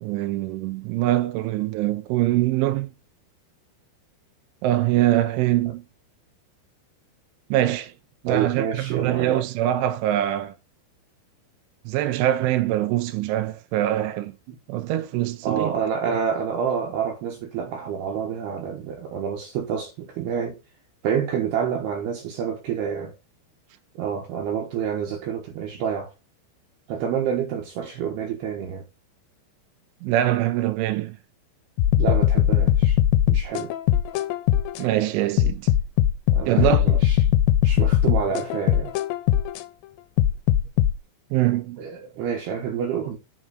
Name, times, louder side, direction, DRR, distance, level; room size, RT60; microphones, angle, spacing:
voice 1, 0.0-2.9 4.6-5.8 7.5-7.9 8.2-10.6 11.9-14.3 14.7-15.7 30.0-31.2 34.8-35.7 36.5-37.0 41.3-41.8, right 14 dB, 90° right, 3.1 m, -23 dB
voice 2, 8.3-9.4 14.5-14.6 15.1-20.6 21.0-23.2 24.0-26.1 26.9-28.9 32.0-33.0 33.3-33.7 36.3-37.3 37.6-39.0 41.8-43.2, right 7 dB, 70° right, 2.8 m, -28 dB
sound 1, 31.8-34.8 35.4-39.6 40.2-40.9, left 12 dB, 80° left, 2.9 m, -20 dB
7.7 x 5.0 x 6.3 m
omnidirectional pair, 5.4 m